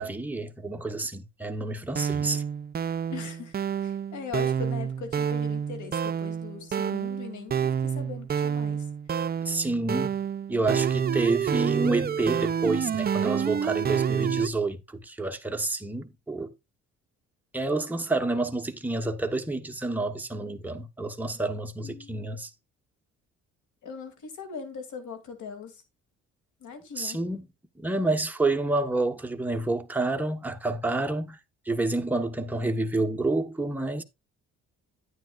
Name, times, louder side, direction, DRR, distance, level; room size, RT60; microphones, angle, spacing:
voice 1, 0.0-2.4 9.4-10.2 10.5-16.5 17.5-22.5 27.0-27.5 27.8-31.4 31.7-34.0, right 2 dB, 5° right, 1.1 m, -29 dB
sound 1, 1.9-14.5, right 8 dB, 30° right, 0.5 m, -28 dB
voice 2, 3.1-8.9 21.8-22.4 23.8-25.8 26.6-27.2, left 6 dB, 75° left, 2.6 m, -40 dB
10.5 x 9.3 x 2.4 m
cardioid pair, 90°, 30 cm